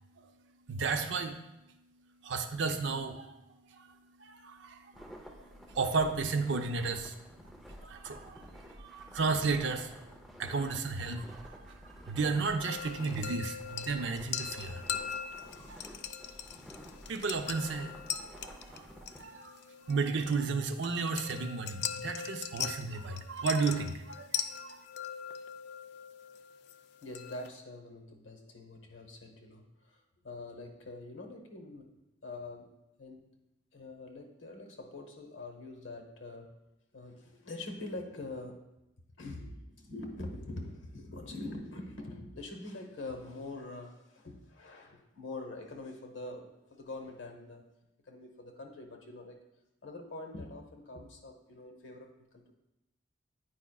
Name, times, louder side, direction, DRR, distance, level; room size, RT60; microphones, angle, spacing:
voice 1, 0.7-1.4 2.2-3.4 3.7-7.2 7.7-10.1 10.4-14.8 15.6-15.9 17.1-19.6 19.9-24.8, right 4 dB, 70° right, 6 dB, 0.5 m, -34 dB
sound 1, 4.9-19.2, equal, ahead, 0.6 m, -51 dB
sound 2, 12.6-27.5, left 8 dB, 60° left, 0.3 m, -41 dB
voice 2, 27.0-32.7 33.0-33.2 33.7-36.6 36.9-38.7 39.2-47.6 48.1-49.4 49.8-52.5, left 2 dB, 80° left, 4 dB, 1.0 m, -44 dB
9.1 x 4.8 x 2.3 m, 0.91 s
head